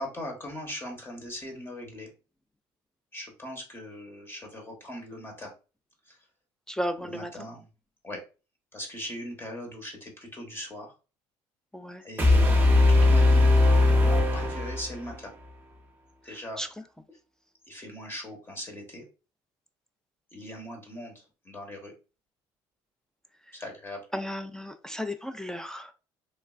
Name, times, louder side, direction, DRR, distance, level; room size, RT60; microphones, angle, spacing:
voice 1, 0.0-2.1 3.1-5.5 6.0-6.3 7.0-7.6 8.0-8.2 8.7-10.9 12.0-12.5 12.9-15.3 16.2-16.6 17.7-19.0 20.3-21.9 23.5-24.0, left 1 dB, 20° left, 1 dB, 0.9 m, -40 dB
voice 2, 6.7-7.3 11.7-12.0 16.3-16.7 23.5-23.6 24.1-25.9, equal, 5° left, 9 dB, 0.3 m, -34 dB
sound 1, 12.2-15.2, left 2 dB, 20° right, 0.7 m, -20 dB
3.1 x 2.3 x 2.3 m, 0.32 s
supercardioid pair, 95°, 11 cm